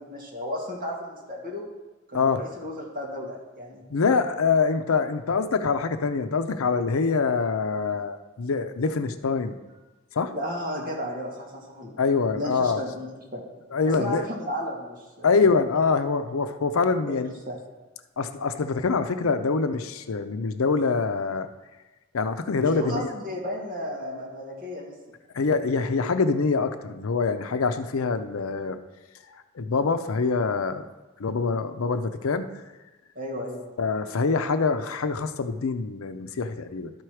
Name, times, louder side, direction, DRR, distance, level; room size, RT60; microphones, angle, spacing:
voice 1, 0.0-1.6 2.1-3.8 10.3-11.9 12.4-13.4 13.9-15.4 17.0-17.2 17.5-17.6 22.6-24.9 33.2-33.7, left 1 dB, 40° right, -3 dB, 2.0 m, -33 dB
voice 2, 3.9-9.6 10.1-10.3 12.0-12.8 13.7-14.3 15.2-17.3 18.2-21.5 22.1-23.1 25.3-28.8 29.3-30.9 31.2-32.6 33.8-36.9, left 4 dB, 90° left, 10 dB, 0.6 m, -25 dB
12.5 x 4.5 x 4.8 m, 1.2 s
head